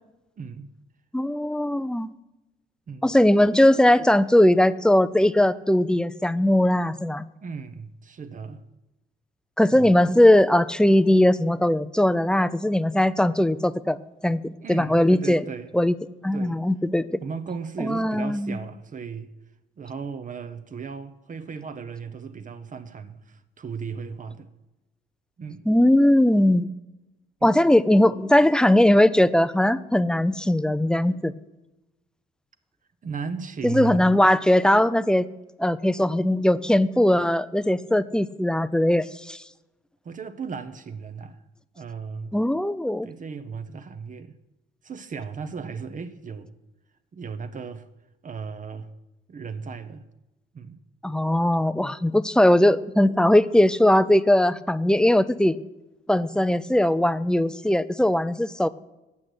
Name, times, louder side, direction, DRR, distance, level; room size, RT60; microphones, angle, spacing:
voice 1, 0.4-0.7 2.9-3.1 7.4-8.6 9.7-9.9 14.6-15.7 16.3-16.6 17.2-19.3 19.8-24.5 25.4-25.7 27.4-27.6 33.0-34.1 40.0-41.4 41.8-42.3 43.0-44.4 44.8-46.5 47.1-47.9 48.2-48.9 49.3-50.0 50.5-50.8, right 5 dB, 40° right, 0.8 m, -36 dB
voice 2, 1.1-2.1 3.0-7.3 9.6-15.4 15.7-15.9 16.2-17.2 17.8-18.6 25.7-26.7 27.4-31.3 33.6-35.3 35.6-39.4 42.3-43.1 51.0-55.6 56.1-58.7, left 1 dB, 5° left, 0.4 m, -20 dB
8.6 x 6.2 x 8.2 m
cardioid pair, 90°, 20 cm